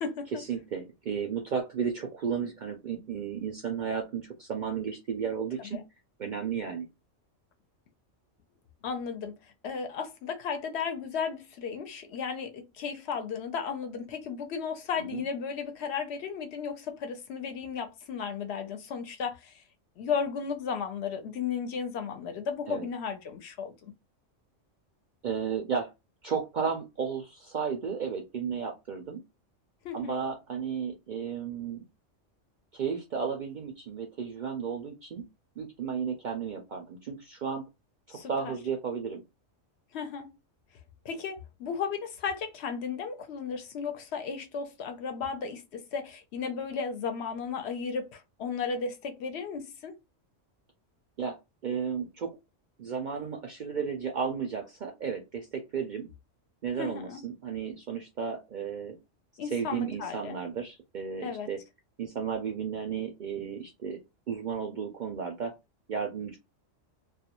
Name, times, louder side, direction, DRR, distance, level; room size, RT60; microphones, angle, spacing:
voice 1, 0.3-5.8 6.2-6.9 15.0-15.2 22.7-22.9 25.2-25.9 26.2-29.2 29.9-31.8 32.7-35.2 35.6-37.6 38.1-39.2 51.2-51.4 51.6-52.3 52.8-56.1 56.6-58.9 59.5-61.6 62.0-64.0 64.3-65.5 65.9-66.4, right 6 dB, 60° right, 0.5 m, -33 dB
voice 2, 8.8-9.4 9.6-19.6 20.0-23.9 29.8-30.2 38.1-38.6 39.9-40.3 41.0-49.9 56.8-57.2 59.4-60.3 61.2-61.5, left 6 dB, 65° left, 0.8 m, -34 dB
2.4 x 2.2 x 2.8 m
omnidirectional pair, 1.3 m